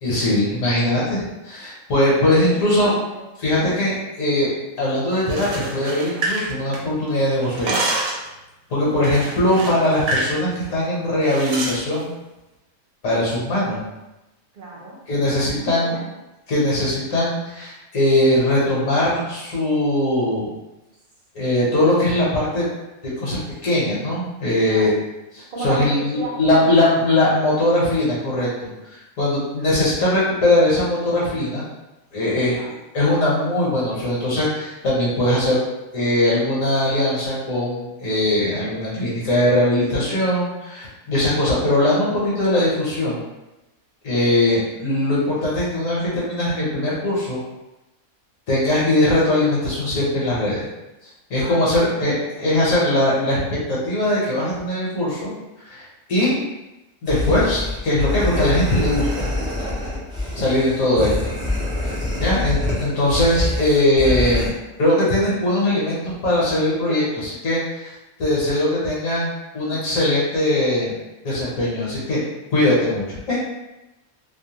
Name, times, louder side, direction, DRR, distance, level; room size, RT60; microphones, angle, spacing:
voice 1, 0.0-2.9 3.4-4.5 4.8-7.7 8.7-12.1 13.0-13.8 15.1-16.0 16.5-20.5 21.3-22.7 23.2-24.9 25.3-31.6 32.1-32.6 32.9-35.6 35.9-43.2 44.0-47.4 48.5-50.6 51.3-52.1 52.4-53.4 53.7-55.3 55.7-55.8 56.1-56.4 57.0-59.3 60.4-61.3 61.8-61.9 62.2-64.5 64.8-67.0 67.4-67.9 68.2-70.9 71.2-72.2 72.5-73.4, left 1 dB, 65° left, -7 dB, 1.1 m, -20 dB
voice 2, 2.3-3.2 8.9-9.1 14.5-16.1 24.6-25.0 25.5-26.8 32.5-32.7 44.9-45.1 51.3-52.5 59.2-59.7 60.9-61.0 62.2-62.5 66.9-67.2 69.6-69.8, right 2 dB, 50° right, -5 dB, 0.6 m, -35 dB
sound 1, 5.2-7.1 7.4-8.3 9.0-10.4 10.6-10.8 11.3-11.8, right 2 dB, 75° right, 1.0 m, -27 dB
sound 2, 57.1-64.5, left 2 dB, 5° right, 0.3 m, -25 dB
2.6 x 2.1 x 2.8 m, 1.0 s
omnidirectional pair, 1.5 m